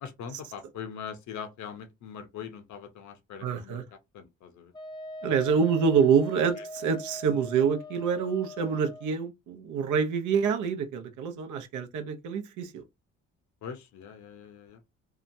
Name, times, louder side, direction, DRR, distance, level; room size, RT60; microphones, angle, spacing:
voice 1, 0.0-3.8 4.1-4.7 7.3-7.4 13.6-14.8, left 7 dB, 70° left, 0.6 m, -42 dB
voice 2, 3.4-3.8 5.2-12.8, right 6 dB, 80° right, 0.7 m, -26 dB
Wind instrument woodwind instrument, 4.7-9.1, equal, 15° left, 0.5 m, -42 dB
2.8 x 2.2 x 2.6 m
cardioid pair, 90°, 30 cm